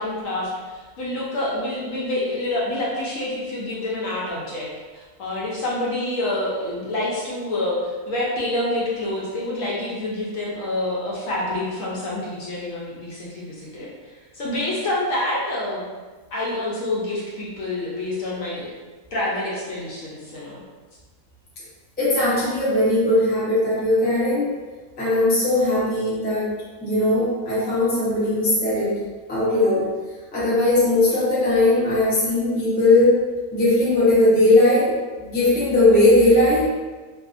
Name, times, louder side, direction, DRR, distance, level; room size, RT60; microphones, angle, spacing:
voice 1, 0.0-4.7 4.9-15.9 16.3-18.7 19.1-20.6, left 1 dB, 70° left, -5 dB, 0.9 m, -27 dB
voice 2, 22.0-24.5 25.0-26.5 26.8-29.0 29.3-29.9 30.3-33.2 33.5-34.9 35.2-36.7, left 2 dB, 15° left, -10 dB, 0.3 m, -18 dB
2.6 x 2.3 x 2.4 m, 1.4 s
omnidirectional pair, 1.6 m